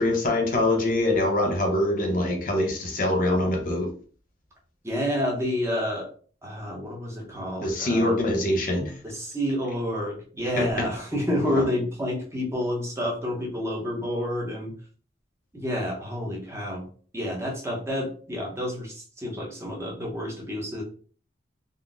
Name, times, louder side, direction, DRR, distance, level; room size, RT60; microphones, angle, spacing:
voice 1, 0.0-3.9 7.6-9.0 10.6-10.7, left 1 dB, 45° left, 2 dB, 0.6 m, -24 dB
voice 2, 4.8-6.1 6.4-8.2 9.0-14.7 15.5-16.9 17.1-20.8, left 1 dB, 15° right, -2 dB, 0.7 m, -29 dB
3.7 x 2.1 x 2.4 m, 0.43 s
head